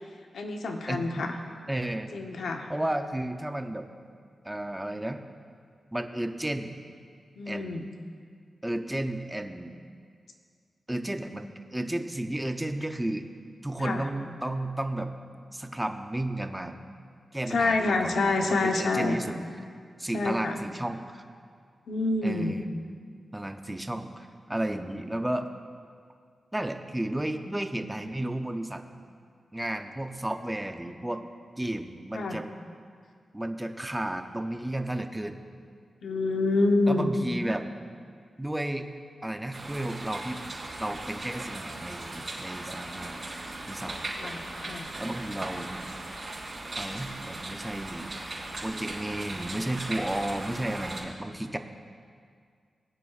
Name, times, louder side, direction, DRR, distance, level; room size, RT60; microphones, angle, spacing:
voice 1, 0.3-1.3 2.1-2.7 7.4-7.8 13.8-14.0 17.5-19.2 20.1-20.6 21.9-22.6 32.1-32.4 36.0-37.1 44.2-44.9, left 2 dB, 80° left, 3 dB, 0.9 m, -27 dB
voice 2, 0.9-1.2 1.7-2.1 2.7-3.9 4.4-5.2 5.9-6.7 7.5-7.9 8.6-9.7 10.9-13.3 13.6-15.1 15.5-16.8 17.3-19.4 20.0-21.2 22.2-22.6 23.3-25.5 26.5-28.8 29.5-31.2 31.6-32.5 33.3-35.4 36.9-37.7 38.4-38.9 39.2-40.4 40.8-43.2 43.7-44.1 45.0-45.9 46.8-48.1 48.6-51.6, right 1 dB, 10° right, 6 dB, 0.5 m, -33 dB
sound 1, 39.5-51.0, right 2 dB, 35° right, 2.4 m, -38 dB
19.5 x 9.7 x 2.4 m, 2.1 s
wide cardioid pair, 160°, 0 cm